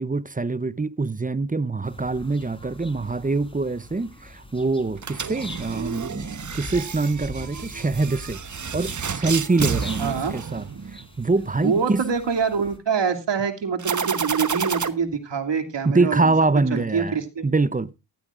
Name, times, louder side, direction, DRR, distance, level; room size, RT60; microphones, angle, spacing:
voice 1, 0.0-8.4 8.7-12.0 15.8-17.2 17.4-17.9, right 3 dB, 20° right, 0.7 m, -24 dB
sound 1, 1.8-12.8, left 1 dB, 10° left, 3.9 m, -43 dB
sound 2, 5.0-11.1 13.8-14.9, right 6 dB, 40° right, 1.2 m, -30 dB
voice 2, 10.0-10.3 11.6-16.2 16.7-17.5, right 6 dB, 65° right, 2.8 m, -25 dB
15.0 x 14.5 x 2.5 m
cardioid pair, 55°, 45 cm